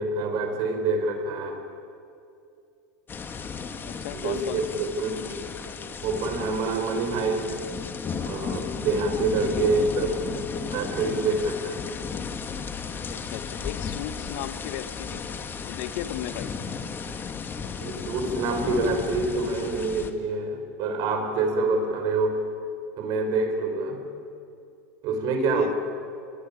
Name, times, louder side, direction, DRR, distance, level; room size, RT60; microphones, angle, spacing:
voice 1, 0.0-1.6 4.1-5.4 6.0-7.5 8.2-10.3 10.7-11.8 17.8-22.4 23.0-24.1 25.0-25.7, right 3 dB, 55° right, 6 dB, 5.8 m, -26 dB
sound 1, 3.1-20.1, left 5 dB, 25° left, 2.2 m, -34 dB
voice 2, 3.8-4.6 9.4-9.7 12.9-16.5 25.4-25.7, left 13 dB, 65° left, 9 dB, 2.0 m, -36 dB
29.0 x 21.0 x 8.8 m, 2.5 s
hypercardioid pair, 105°, 8 cm